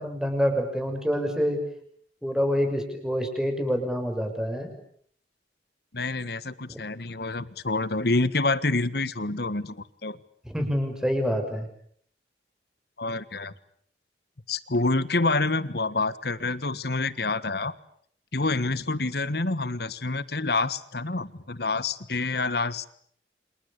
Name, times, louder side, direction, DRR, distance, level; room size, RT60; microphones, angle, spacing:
voice 1, 0.0-1.6 2.2-4.7 6.7-6.8 10.4-11.7, equal, 5° right, 5 dB, 6.3 m, -27 dB
voice 2, 5.9-9.8 10.0-10.2 13.0-13.5 14.5-17.7 18.3-22.9, left 3 dB, 60° left, 16 dB, 1.5 m, -27 dB
30.0 x 27.0 x 6.8 m, 0.63 s
head